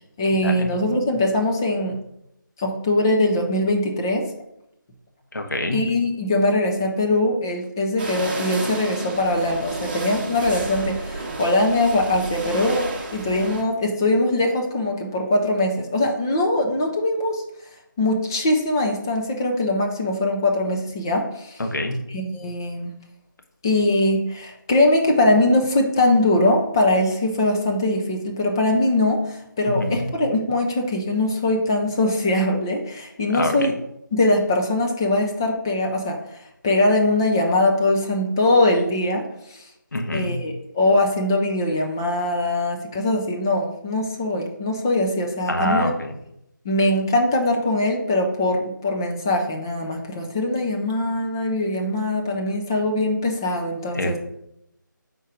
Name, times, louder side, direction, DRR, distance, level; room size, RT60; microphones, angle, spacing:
voice 1, 0.2-2.0 2.6-4.3 5.7-17.4 18.0-21.6 22.1-22.9 23.6-33.7 34.1-36.2 36.6-39.3 39.5-39.6 40.1-46.0 46.6-54.2, left 1 dB, 10° left, 2 dB, 0.4 m, -22 dB
voice 2, 5.3-5.8 21.6-22.0 29.7-30.1 33.3-33.7 39.9-40.4 45.5-46.1 53.9-54.2, left 1 dB, 65° left, 4 dB, 1.1 m, -25 dB
sound 1, 8.0-13.6, right 3 dB, 30° right, 0.9 m, -31 dB
5.4 x 4.4 x 4.9 m, 0.80 s
figure-of-eight pair, 160°, 11 cm